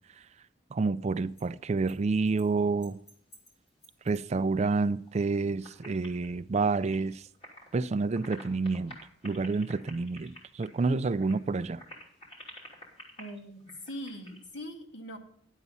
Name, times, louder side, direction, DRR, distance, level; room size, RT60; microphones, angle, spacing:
voice 1, 0.7-3.0 4.1-7.2 7.7-8.9 9.2-11.8, right 4 dB, 35° right, 0.4 m, -29 dB
sound 1, 1.2-1.4 1.9-2.0 2.3-2.5 2.8-4.7 5.0-5.4 5.6-7.7 8.0-14.4, equal, 35° left, 3.1 m, -51 dB
voice 2, 13.2-15.2, equal, 75° left, 1.9 m, -41 dB
10.5 x 8.2 x 5.5 m
head